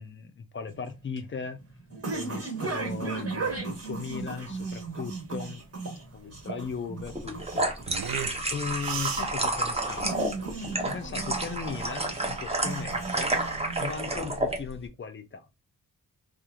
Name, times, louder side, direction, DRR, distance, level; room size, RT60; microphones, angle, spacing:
voice 1, 0.0-1.6 2.1-5.6 6.1-7.7 8.5-13.4 13.8-15.5, left 6 dB, 35° left, 0.4 m, -38 dB
sound 1, 0.7-14.2, right 3 dB, 40° right, 1.2 m, -37 dB
sound 2, 2.8-10.8, right 9 dB, 70° right, 0.5 m, -40 dB
sound 3, 7.1-14.6, right 2 dB, 15° right, 0.6 m, -30 dB
2.9 x 2.4 x 2.2 m
wide cardioid pair, 115°, 36 cm